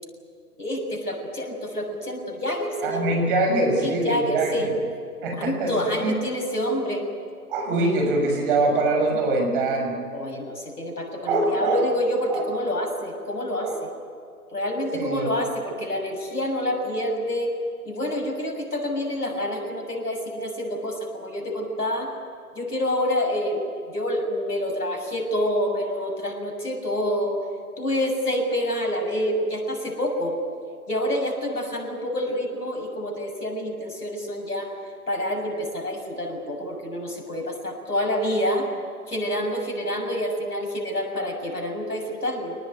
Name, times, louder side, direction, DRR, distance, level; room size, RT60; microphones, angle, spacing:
voice 1, 0.6-3.3 3.8-4.7 5.3-7.1 10.1-13.9 14.5-17.5 17.8-22.1 22.5-27.4 27.8-30.4 30.9-34.7 35.1-38.7 39.1-42.6, left 1 dB, 85° left, 2 dB, 6.7 m, -27 dB
voice 2, 2.8-4.7 5.2-6.1 7.5-10.0 11.2-11.8 12.3-12.4 13.6-13.8 14.9-15.3, right 2 dB, 35° right, 3 dB, 6.3 m, -23 dB
25.5 x 19.0 x 9.4 m, 2.4 s
figure-of-eight pair, 135°, 45 cm